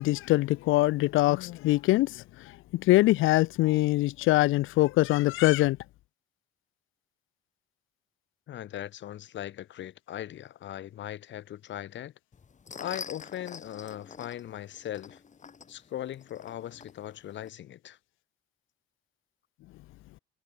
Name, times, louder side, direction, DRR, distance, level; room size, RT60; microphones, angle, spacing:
voice 1, 0.0-5.8, left 18 dB, 85° left, 0.6 m, -23 dB
voice 2, 8.5-12.1 12.8-15.2 15.7-18.0, left 12 dB, 65° left, 1.2 m, -39 dB
sound 1, 12.3-17.5, left 6 dB, 40° left, 2.0 m, -46 dB
cardioid pair, 90°, 20 cm